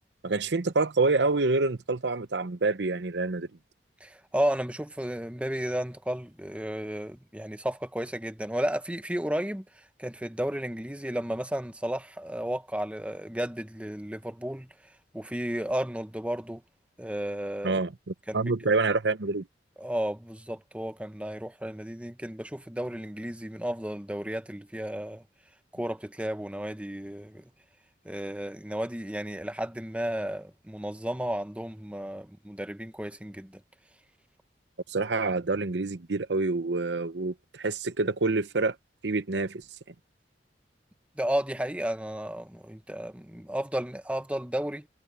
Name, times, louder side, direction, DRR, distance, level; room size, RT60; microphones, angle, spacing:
voice 1, 0.2-3.5 17.6-19.5 34.9-38.8 39.0-39.6, right 3 dB, 70° right, 0.8 m, -27 dB
voice 2, 4.0-14.7 15.1-16.6 17.0-17.8 18.3-18.5 19.8-25.2 25.7-27.5 28.0-33.6 41.2-44.9, right 1 dB, 5° right, 1.0 m, -33 dB
head